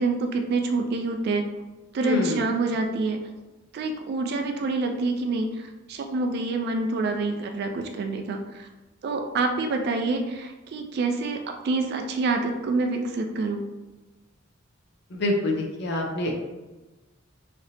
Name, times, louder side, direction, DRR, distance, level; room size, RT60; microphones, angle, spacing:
voice 1, 0.0-1.5 1.9-3.2 3.7-8.7 9.0-13.6, right 3 dB, 55° right, 4 dB, 0.3 m, -27 dB
voice 2, 2.0-2.4 15.1-16.3, left 1 dB, 55° left, 2 dB, 0.6 m, -26 dB
3.2 x 2.7 x 2.7 m, 1.1 s
head